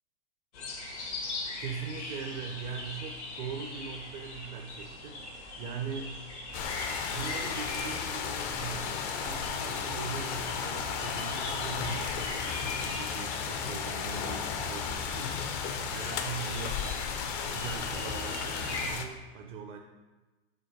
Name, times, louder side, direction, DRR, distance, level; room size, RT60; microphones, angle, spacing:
sound 1, 0.5-18.9, left 2 dB, 90° left, 1.7 m, -41 dB
voice 1, 1.6-5.2 5.6-6.2 7.0-17.0 17.5-19.8, right 6 dB, 35° right, 5 dB, 0.4 m, -41 dB
sound 2, 6.5-19.1, left 6 dB, 30° left, 0.4 m, -34 dB
5.7 x 3.4 x 5.2 m, 1.2 s
hypercardioid pair, 130°, 33 cm